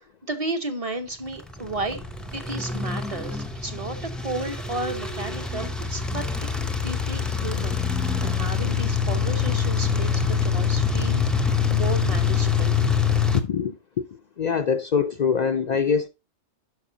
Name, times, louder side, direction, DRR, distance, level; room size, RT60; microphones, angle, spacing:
voice 1, 0.0-2.0 2.3-6.5 6.8-12.8, right 2 dB, 35° right, 0.9 m, -33 dB
sound 1, 1.4-13.4, left 6 dB, ahead, 0.5 m, -25 dB
voice 2, 13.3-14.1 14.4-16.1, left 6 dB, 55° left, 0.4 m, -24 dB
11.5 x 4.7 x 2.7 m
omnidirectional pair, 1.2 m